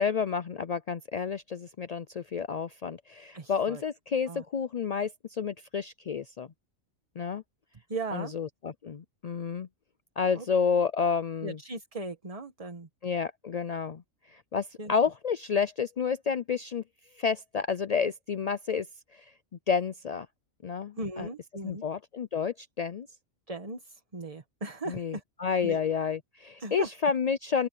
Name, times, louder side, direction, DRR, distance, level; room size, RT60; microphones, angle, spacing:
voice 1, 0.0-6.5 7.2-7.4 8.1-9.7 10.2-11.6 13.0-14.0 14.3-16.8 17.2-18.9 19.1-19.2 19.7-20.3 20.6-21.3 21.6-23.1 24.9-27.7, left 6 dB, 70° left, 0.3 m, -30 dB
voice 2, 3.3-3.8 4.3-4.4 7.9-8.3 10.3-10.5 11.4-12.9 14.8-14.9 21.0-21.8 23.5-25.2 25.6-25.8 26.6-26.9, right 2 dB, 25° right, 1.4 m, -37 dB
open air
omnidirectional pair, 1.4 m